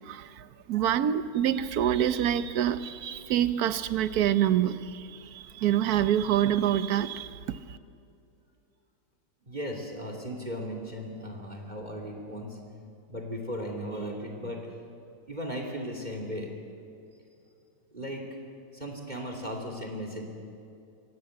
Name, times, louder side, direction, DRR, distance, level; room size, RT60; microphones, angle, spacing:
voice 1, 0.1-7.6, right 10 dB, 60° right, 12 dB, 1.2 m, -26 dB
voice 2, 9.5-12.6 13.1-14.6 15.3-16.5 17.9-18.2 18.7-20.3, equal, 20° right, 2 dB, 2.8 m, -36 dB
25.0 x 17.0 x 7.8 m, 2.5 s
omnidirectional pair, 2.1 m